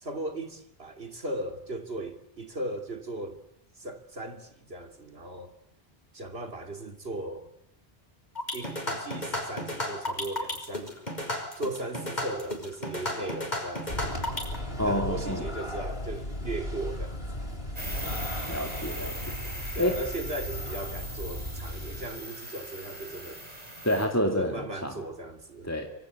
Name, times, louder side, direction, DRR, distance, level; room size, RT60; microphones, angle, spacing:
voice 1, 0.0-3.4 3.8-5.5 6.1-7.5 8.5-10.9 11.6-14.1 14.8-17.2 19.7-23.4 24.4-25.7, right 2 dB, 75° right, 3.2 m, -37 dB
sound 1, 8.3-14.6, left 1 dB, 45° left, 5.9 m, -33 dB
sound 2, 13.9-22.1, left 1 dB, 70° left, 7.9 m, -36 dB
voice 2, 14.8-15.5 18.5-19.2 19.8-20.0 23.8-25.0 25.6-25.9, equal, 15° left, 2.3 m, -28 dB
sound 3, 17.7-24.1, right 1 dB, 40° right, 6.4 m, -40 dB
26.0 x 24.5 x 8.3 m
omnidirectional pair, 1.0 m